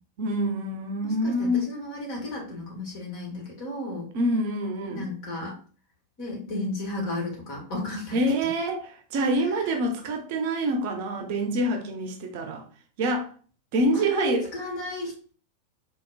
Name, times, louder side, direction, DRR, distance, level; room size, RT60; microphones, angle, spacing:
voice 1, 0.2-1.7 4.1-5.1 8.1-12.6 13.0-13.3 13.7-14.5, right 1 dB, 50° right, 4 dB, 0.6 m, -26 dB
voice 2, 1.0-4.1 4.9-5.5 6.2-8.2 13.9-15.3, left 2 dB, 45° left, -2 dB, 1.6 m, -33 dB
4.4 x 2.3 x 2.4 m, 0.41 s
figure-of-eight pair, 90°, 0 cm